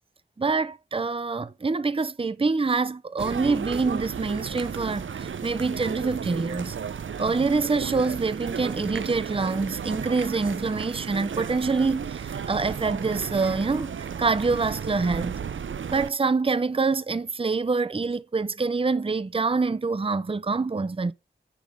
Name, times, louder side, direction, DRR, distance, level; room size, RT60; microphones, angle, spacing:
voice 1, 0.4-6.8 7.2-15.4 15.9-21.1, right 4 dB, 30° right, 0.5 m, -26 dB
sound 1, 3.2-16.1, right 7 dB, 80° right, 0.4 m, -33 dB
10.0 x 3.4 x 6.3 m
wide cardioid pair, 55°, 20 cm